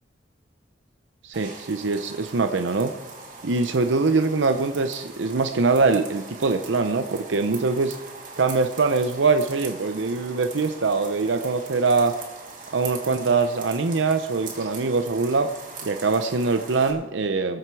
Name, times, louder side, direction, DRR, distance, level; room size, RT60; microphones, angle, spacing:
voice 1, 1.2-2.9 3.4-7.9 8.4-12.1 12.7-15.5 15.8-17.6, right 4 dB, 90° right, 7 dB, 0.7 m, -23 dB
sound 1, 1.3-16.9, right 4 dB, 45° right, 2.7 m, -41 dB
20.5 x 7.8 x 4.7 m, 1.2 s
head